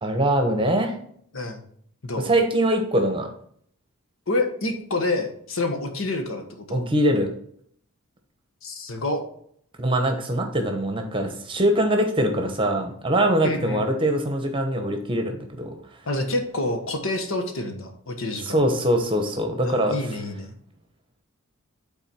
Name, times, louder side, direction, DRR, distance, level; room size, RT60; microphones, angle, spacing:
voice 1, 0.0-0.9 2.2-3.3 6.7-7.3 9.8-15.7 18.4-20.2, right 1 dB, 25° right, 5 dB, 0.9 m, -23 dB
voice 2, 4.3-6.9 8.6-9.2 13.4-13.9 16.1-18.6 19.6-20.5, left 2 dB, 70° left, 6 dB, 1.2 m, -28 dB
8.9 x 4.1 x 4.3 m, 0.64 s
head